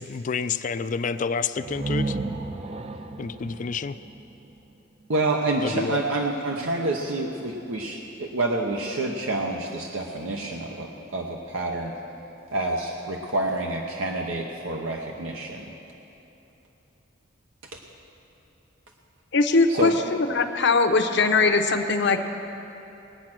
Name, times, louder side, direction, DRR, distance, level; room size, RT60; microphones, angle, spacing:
voice 1, 0.0-2.2 3.2-4.0 5.6-6.0, left 5 dB, 40° left, 13 dB, 0.4 m, -29 dB
sound 1, 1.6-5.3, right 2 dB, 30° right, 0.4 m, -33 dB
voice 2, 5.1-12.0 12.5-15.6 17.7-17.8 19.7-19.9, right 2 dB, 85° right, 0 dB, 0.9 m, -28 dB
voice 3, 19.3-22.2, left 3 dB, 60° left, 6 dB, 0.8 m, -21 dB
20.5 x 8.7 x 6.0 m, 3.0 s
head